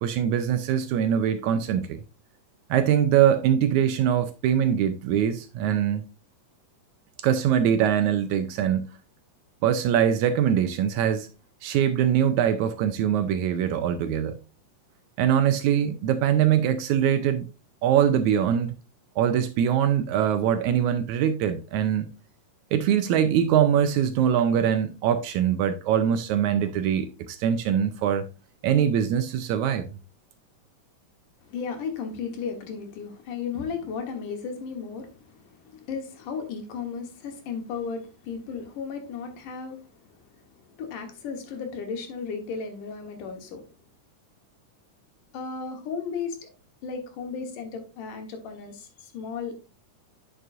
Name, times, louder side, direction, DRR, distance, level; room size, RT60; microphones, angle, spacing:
voice 1, 0.0-2.0 2.7-6.0 7.2-8.9 9.6-11.3 11.6-14.3 15.2-17.5 17.8-18.7 19.2-22.1 22.7-28.2 28.6-29.9, right 9 dB, 80° right, 1.8 m, -23 dB
voice 2, 31.4-39.8 40.2-40.3 40.8-43.6 45.3-46.5 46.8-49.5, left 5 dB, 80° left, 2.8 m, -35 dB
9.5 x 6.1 x 2.5 m
omnidirectional pair, 3.7 m